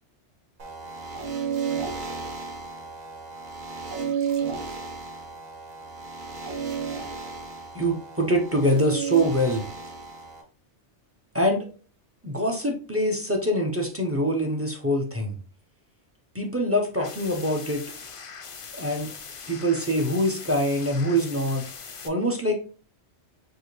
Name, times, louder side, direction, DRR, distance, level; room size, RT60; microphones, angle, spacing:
sound 1, 0.6-10.4, right 6 dB, 50° right, 0.9 m, -33 dB
voice 1, 7.7-9.7 11.3-11.7 12.2-15.4 16.3-17.8 18.7-19.1 19.5-21.6 22.0-22.6, equal, 15° right, 1 dB, 0.5 m, -24 dB
sound 2, 16.9-22.1, left 5 dB, 55° left, 0.3 m, -41 dB
4.8 x 2.7 x 3.0 m, 0.38 s
omnidirectional pair, 1.2 m